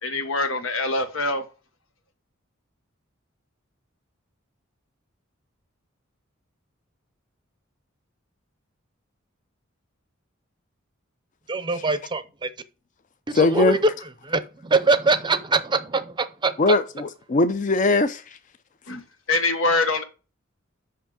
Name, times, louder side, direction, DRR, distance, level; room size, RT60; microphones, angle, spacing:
voice 1, 0.0-1.4 18.9-19.0 19.3-20.0, left 2 dB, 90° left, 1.4 m, -24 dB
voice 2, 11.5-12.5 13.3-13.8 14.2-16.5, right 3 dB, 20° right, 0.6 m, -23 dB
voice 3, 13.3-13.8 16.6-18.4, left 3 dB, 40° left, 0.4 m, -20 dB
5.8 x 5.4 x 6.3 m
head